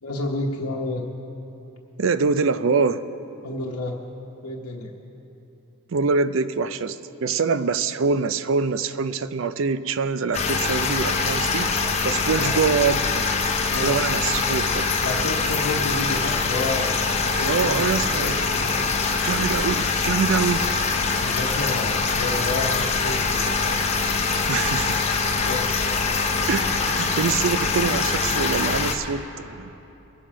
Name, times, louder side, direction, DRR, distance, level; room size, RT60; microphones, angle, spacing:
voice 1, 0.0-1.0 3.4-4.0 4.4-4.9 12.4-12.6 13.7-14.1 15.0-17.0 17.4-18.8 21.2-23.4 25.4-25.7, left 2 dB, 80° left, -2 dB, 1.0 m, -30 dB
voice 2, 2.0-3.0 5.9-11.7 12.0-13.3 13.8-14.9 15.2-15.3 17.4-18.4 19.2-20.7 24.5-25.0 26.5-29.7, right 5 dB, 60° right, 13 dB, 0.4 m, -24 dB
sound 1, 10.3-29.0, left 4 dB, 30° left, 0.7 m, -23 dB
21.5 x 7.5 x 4.9 m, 3.0 s
head